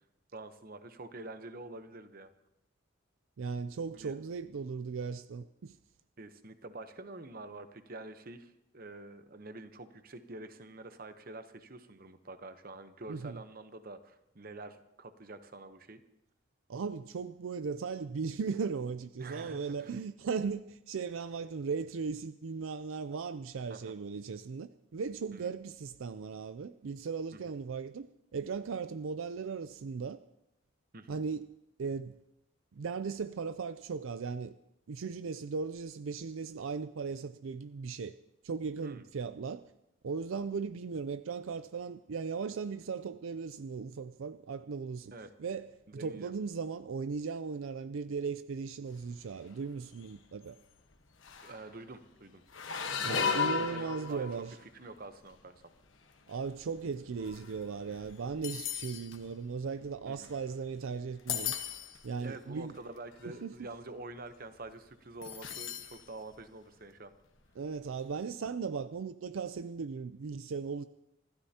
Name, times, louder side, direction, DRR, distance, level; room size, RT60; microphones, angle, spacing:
voice 1, 0.3-2.3 3.9-4.2 6.2-16.0 19.2-20.0 23.7-23.9 25.3-25.5 27.3-27.4 30.9-31.2 38.8-39.0 45.1-45.3 45.9-46.3 51.4-52.4 53.2-55.6 60.1-60.3 62.2-67.1, right 2 dB, 45° right, 0.9 m, -47 dB
voice 2, 3.4-5.8 13.1-13.4 16.7-30.2 31.1-31.5 31.8-32.2 32.7-34.5 34.9-38.1 38.4-39.7 40.0-45.1 45.4-50.6 53.0-54.6 56.3-61.5 62.0-62.8 63.2-63.8 67.6-70.8, right 5 dB, 70° right, 0.4 m, -37 dB
sound 1, 49.2-49.6 49.9-50.2 50.9-51.0 51.2-51.7 52.5-54.6 55.3-55.6 56.3-60.7 61.1-62.1 62.7-62.8 63.1-63.4 65.2-66.0 66.3-66.4 67.8-67.9, left 6 dB, 65° left, 1.2 m, -36 dB
26.5 x 13.5 x 2.9 m
head